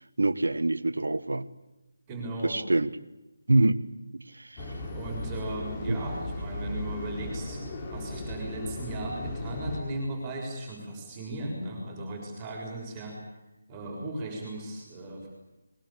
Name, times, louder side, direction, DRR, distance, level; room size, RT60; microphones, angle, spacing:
voice 1, 0.2-1.5 2.4-2.9 3.5-3.8 4.1-4.7 5.9-6.0, right 2 dB, 70° right, 14 dB, 1.5 m, -25 dB
voice 2, 2.1-2.6 4.9-13.2 13.7-15.3, right 1 dB, 15° right, -1 dB, 6.8 m, -36 dB
sound 1, 4.6-9.8, left 2 dB, 25° left, 4.1 m, -36 dB
23.0 x 22.5 x 8.9 m, 0.98 s
figure-of-eight pair, 155°, 0 cm